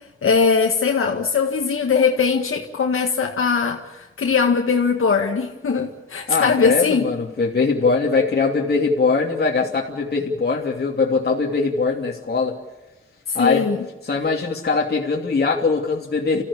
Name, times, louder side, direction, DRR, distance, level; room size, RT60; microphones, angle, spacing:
voice 1, 0.2-7.1 13.4-13.8, left 5 dB, 85° left, 2 dB, 1.9 m, -20 dB
voice 2, 6.3-12.6 13.3-13.7 14.0-16.4, left 4 dB, 50° left, -1 dB, 2.7 m, -21 dB
29.5 x 15.0 x 8.6 m, 1.1 s
wide cardioid pair, 125°, 21 cm